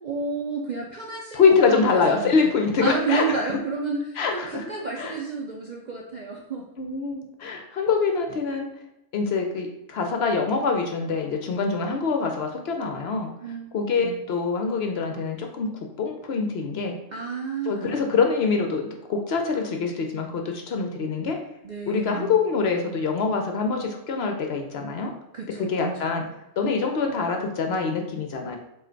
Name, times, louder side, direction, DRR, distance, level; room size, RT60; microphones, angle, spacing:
voice 1, 0.0-6.7 13.4-13.7 14.0-14.1 17.1-17.9 21.6-22.3 25.3-26.1, right 4 dB, 60° right, 0 dB, 0.4 m, -31 dB
voice 2, 1.3-3.5 4.2-4.7 5.0-5.2 6.8-8.7 9.1-13.3 13.7-15.7 16.0-17.0 17.7-21.4 21.9-25.1 25.6-26.2 26.6-28.6, left 5 dB, 60° left, 4 dB, 0.7 m, -24 dB
4.8 x 2.5 x 4.4 m, 0.88 s
omnidirectional pair, 1.4 m